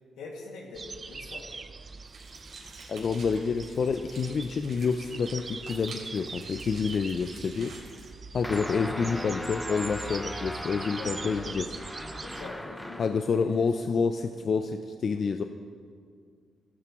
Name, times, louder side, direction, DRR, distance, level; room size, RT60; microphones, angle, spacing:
voice 1, 0.2-1.4 11.0-11.5 12.2-13.7, left 3 dB, 90° left, -1 dB, 2.2 m, -43 dB
sound 1, 0.7-12.5, right 4 dB, 40° right, 0.6 m, -42 dB
sound 2, 2.0-8.1, right 3 dB, 75° right, 3.4 m, -49 dB
voice 2, 2.9-7.8 8.3-11.7 13.0-15.4, left 5 dB, 55° left, 6 dB, 0.5 m, -28 dB
sound 3, 8.4-13.3, left 1 dB, 5° left, 0.7 m, -38 dB
15.0 x 12.5 x 3.1 m, 2.1 s
cardioid pair, 75°, 0 cm